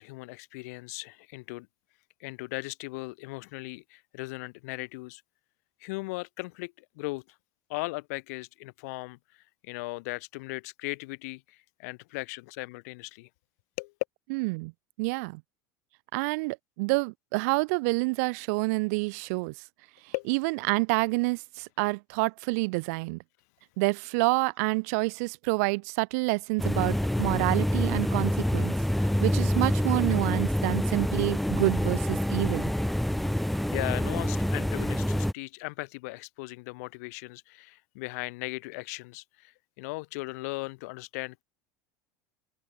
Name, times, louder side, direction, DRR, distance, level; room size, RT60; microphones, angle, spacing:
voice 1, 0.0-1.7 2.2-5.2 5.8-7.2 7.7-9.2 9.6-13.3 13.8-13.9 20.1-20.3 33.1-33.2 33.7-41.4, left 25 dB, 75° left, 1.3 m, -38 dB
voice 2, 14.3-14.7 15.0-15.4 16.1-19.5 20.3-23.2 23.8-28.7 29.0-32.6, right 28 dB, 75° right, 0.4 m, -28 dB
sound 1, 26.6-35.3, equal, ahead, 0.4 m, -27 dB
supercardioid pair, 135°, 9 cm